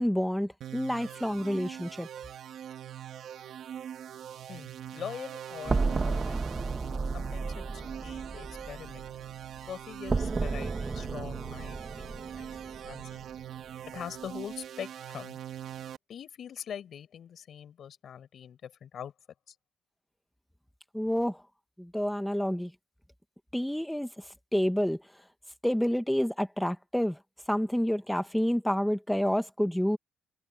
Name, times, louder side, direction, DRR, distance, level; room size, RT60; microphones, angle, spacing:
voice 1, 0.0-2.1 20.9-21.4 21.8-22.7 23.5-24.1 24.5-25.0 25.6-27.2 27.5-30.0, equal, 5° left, 1.9 m, -28 dB
sound 1, 0.6-16.0, right 10 dB, 70° right, 3.1 m, -42 dB
voice 2, 4.5-6.5 7.1-9.1 9.7-13.2 13.9-15.4 16.1-19.1 19.5-19.6, left 8 dB, 60° left, 7.5 m, -43 dB
sound 2, 5.7-9.7 10.1-13.4, right 3 dB, 30° right, 1.9 m, -33 dB
cardioid pair, 90°, 0 cm